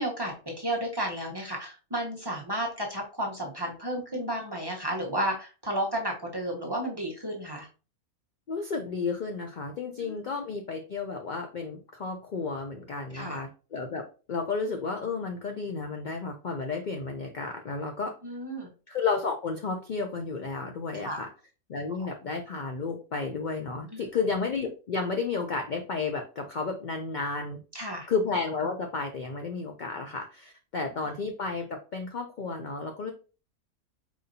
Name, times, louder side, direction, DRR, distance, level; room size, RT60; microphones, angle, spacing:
voice 1, 0.0-7.7 10.0-10.2 13.1-13.4 18.2-18.7 20.9-21.2 23.9-24.1 27.7-28.1, right 1 dB, 20° right, -2 dB, 0.8 m, -32 dB
voice 2, 8.5-14.0 14.3-18.1 18.9-21.3 21.7-27.6 28.1-33.1, left 4 dB, 70° left, 3 dB, 0.4 m, -32 dB
4.7 x 4.1 x 2.6 m, 0.35 s
omnidirectional pair, 1.5 m